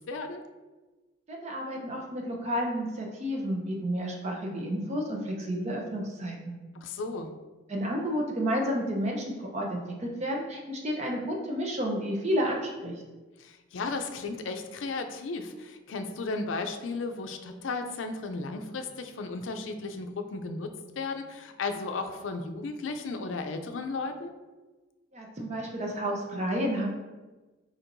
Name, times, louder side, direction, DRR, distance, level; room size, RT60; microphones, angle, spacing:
voice 1, 0.1-0.4 6.8-7.3 13.4-20.7 21.0-24.3, left 3 dB, 80° left, 6 dB, 0.4 m, -34 dB
voice 2, 1.3-6.6 7.7-12.9 25.1-26.9, equal, 35° right, 0 dB, 0.7 m, -31 dB
4.4 x 4.2 x 2.6 m, 1.2 s
head